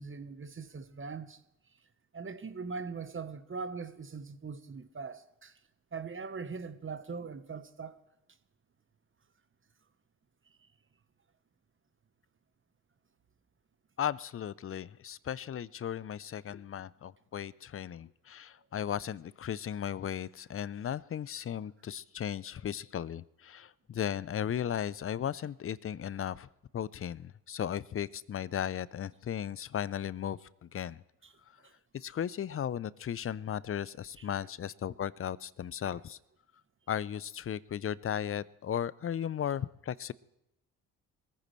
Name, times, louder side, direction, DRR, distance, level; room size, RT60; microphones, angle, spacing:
voice 1, 0.0-1.4 2.1-5.5 5.9-8.0 31.2-31.3 31.6-31.7 34.2-34.3 35.9-36.0, right 5 dB, 30° right, 1.1 m, -41 dB
voice 2, 14.0-26.5 26.7-31.0 31.9-36.2 36.9-40.1, left 9 dB, 30° left, 0.6 m, -36 dB
22.5 x 14.5 x 3.2 m
hypercardioid pair, 50°, 43 cm